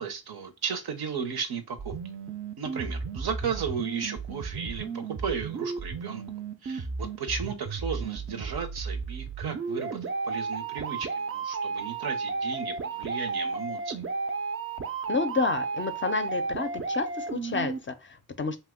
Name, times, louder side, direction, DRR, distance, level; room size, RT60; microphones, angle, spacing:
voice 1, 0.0-1.9 2.6-6.2 6.6-14.0, right 6 dB, 80° right, 0.7 m, -35 dB
sound 1, 1.8-17.8, right 4 dB, 35° right, 0.4 m, -33 dB
voice 2, 15.1-18.6, left 4 dB, 35° left, 0.4 m, -30 dB
2.8 x 2.1 x 3.5 m
cardioid pair, 65°, 38 cm